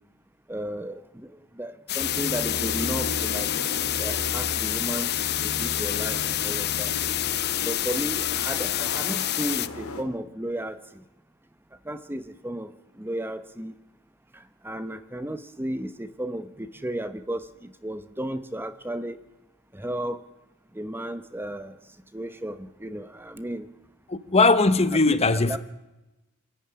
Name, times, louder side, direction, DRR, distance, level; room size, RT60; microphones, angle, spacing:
voice 1, 0.5-1.3 1.6-3.5 4.0-5.1 5.4-6.9 7.6-10.8 11.9-12.7 13.0-13.7 14.6-19.2 19.7-20.2 20.7-21.8 22.1-23.7 24.9-25.2 25.5-25.6, right 1 dB, 10° right, 0.9 m, -34 dB
sound 1, 1.9-9.7, left 13 dB, 50° left, 0.7 m, -28 dB
sound 2, 2.0-10.0, left 2 dB, 80° left, 3.1 m, -35 dB
voice 2, 24.1-25.6, left 3 dB, 30° left, 1.1 m, -20 dB
27.0 x 14.0 x 9.8 m
head